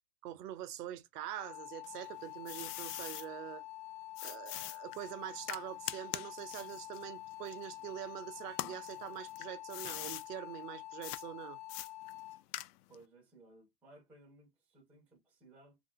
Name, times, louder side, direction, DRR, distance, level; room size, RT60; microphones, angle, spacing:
voice 1, 0.2-3.6 4.2-11.6, right 12 dB, 80° right, 0.7 m, -44 dB
sound 1, 1.2-12.4, left 16 dB, 40° left, 0.8 m, -48 dB
sound 2, 1.8-3.3 4.2-8.1 8.5-10.3 11.0-11.2 11.7-13.0, left 15 dB, 75° left, 0.5 m, -43 dB
voice 2, 12.9-15.8, right 2 dB, 5° right, 0.4 m, -60 dB
2.4 x 2.1 x 3.8 m
supercardioid pair, 145°, 47 cm